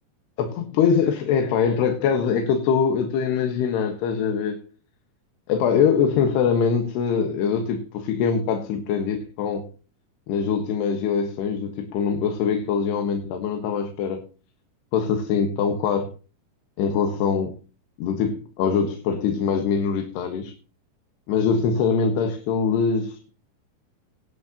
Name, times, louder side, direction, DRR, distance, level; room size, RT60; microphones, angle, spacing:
voice 1, 0.4-4.6 5.5-9.7 10.3-14.2 14.9-16.1 16.8-17.6 18.0-20.5 21.3-23.2, left 6 dB, 85° left, 3.6 m, -23 dB
17.5 x 10.5 x 2.9 m
omnidirectional pair, 4.6 m